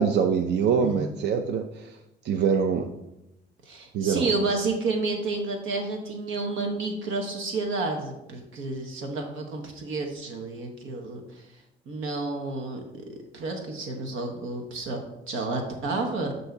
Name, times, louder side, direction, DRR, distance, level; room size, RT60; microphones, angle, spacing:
voice 1, 0.0-1.9 2.2-2.9 3.9-4.3, right 6 dB, 60° right, 6 dB, 0.5 m, -24 dB
voice 2, 0.8-1.1 3.6-11.4 11.9-12.8 13.3-15.0 15.3-16.3, right 3 dB, 80° right, 2 dB, 1.0 m, -30 dB
7.8 x 2.7 x 5.8 m, 0.91 s
cardioid pair, 90°, 20 cm